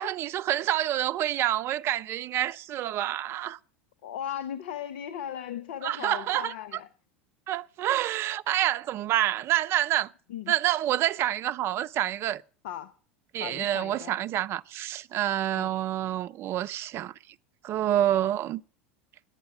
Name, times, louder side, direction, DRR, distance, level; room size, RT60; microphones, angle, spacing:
voice 1, 0.0-3.6 5.8-6.5 7.5-10.1 10.5-12.4 13.3-17.1 17.6-18.6, right 13 dB, 45° right, 0.6 m, -27 dB
voice 2, 4.0-6.9 10.3-10.5 12.6-12.9 13.4-14.2 15.6-15.8, left 10 dB, 65° left, 0.8 m, -37 dB
11.0 x 9.0 x 9.0 m
hypercardioid pair, 80°, 6 cm